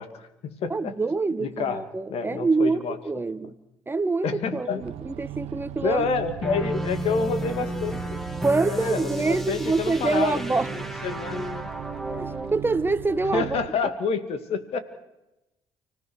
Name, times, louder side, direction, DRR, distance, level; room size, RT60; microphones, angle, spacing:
voice 1, 0.0-0.9 1.4-1.8 2.1-3.0 4.2-4.8 5.8-8.2 8.6-10.4 10.7-11.7 13.3-14.8, left 5 dB, 65° left, 2.5 m, -28 dB
voice 2, 0.7-3.5 3.9-6.0 8.4-10.7 12.2-13.6, right 3 dB, 20° right, 1.3 m, -25 dB
sound 1, 4.8-13.7, right 12 dB, 75° right, 0.9 m, -38 dB
sound 2, 6.4-12.6, right 1 dB, ahead, 2.6 m, -33 dB
29.5 x 17.0 x 6.5 m
supercardioid pair, 65°, 11 cm